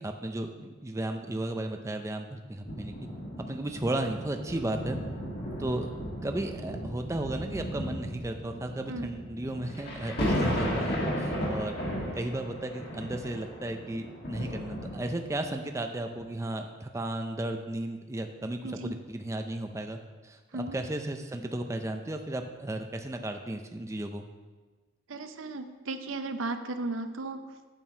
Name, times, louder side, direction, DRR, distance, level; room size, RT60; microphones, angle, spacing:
voice 1, 0.0-2.9 3.5-5.0 5.6-5.9 6.2-11.8 12.1-24.2, right 1 dB, 15° right, 5 dB, 0.4 m, -34 dB
sound 1, 2.6-15.4 16.1-16.2, equal, 55° left, 1.8 m, -35 dB
voice 2, 25.1-27.4, right 2 dB, 85° right, 9 dB, 0.6 m, -35 dB
8.9 x 4.6 x 6.1 m, 1.3 s
head